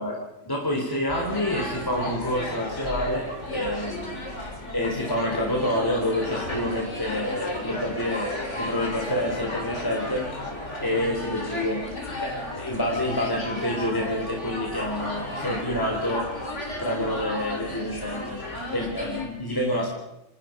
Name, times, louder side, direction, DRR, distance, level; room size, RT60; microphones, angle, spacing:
voice 1, 0.0-11.9 12.2-16.4 16.8-19.9, left 1 dB, 10° left, -2 dB, 4.0 m, -28 dB
sound 1, 1.1-19.3, left 1 dB, 45° left, 4.3 m, -34 dB
29.0 x 19.5 x 5.3 m, 0.89 s
omnidirectional pair, 1.8 m